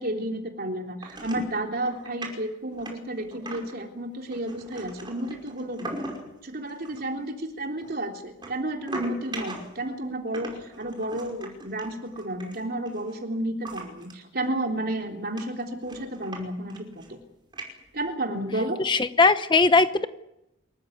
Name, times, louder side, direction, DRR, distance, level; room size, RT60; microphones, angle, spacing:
voice 1, 0.0-5.9 6.4-17.0 17.9-18.8, right 1 dB, 50° right, 2 dB, 3.6 m, -31 dB
sound 1, 1.0-1.6 1.8-2.3 2.7-3.8 4.3-6.3 6.7-7.0 7.8-9.9 10.3-13.1 13.6-14.1 14.4-14.5 15.0-15.1 15.4-16.4 16.7-17.2 17.5-18.1, right 2 dB, 25° right, 5.4 m, -39 dB
voice 2, 18.8-20.1, left 3 dB, 25° left, 11 dB, 0.8 m, -19 dB
27.0 x 14.5 x 9.5 m, 0.86 s
head